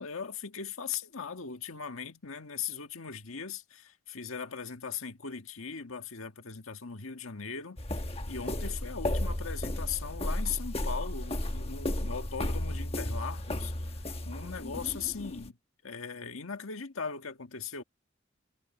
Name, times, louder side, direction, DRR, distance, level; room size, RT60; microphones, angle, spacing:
voice 1, 0.0-7.8 8.3-14.0 14.2-15.6 15.8-17.8, left 6 dB, 90° left, 1.7 m, -39 dB
sound 1, 7.8-15.5, left 1 dB, 30° left, 1.3 m, -34 dB
head